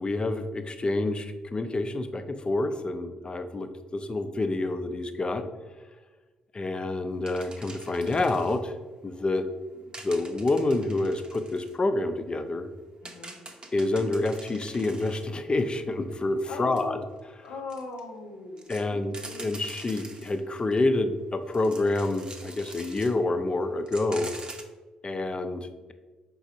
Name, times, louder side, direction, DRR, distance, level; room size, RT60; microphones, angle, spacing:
voice 1, 0.0-5.5 6.5-8.7 9.0-9.5 9.8-12.7 13.7-17.0 18.7-24.3 25.0-25.9, left 2 dB, 30° left, 8 dB, 0.5 m, -28 dB
sound 1, 7.3-8.6 9.9-11.8 12.4-12.5 12.8-15.3 16.1-16.2 16.8-16.9 17.5-18.0 18.6-20.8 21.4-23.2 23.5-23.6 23.9-24.6, right 2 dB, 25° right, 0.7 m, -45 dB
voice 2, 13.0-13.4 16.4-17.1 17.4-19.5, left 4 dB, 70° left, 3 dB, 0.6 m, -40 dB
5.1 x 3.9 x 2.7 m, 1.2 s
hypercardioid pair, 45°, 3 cm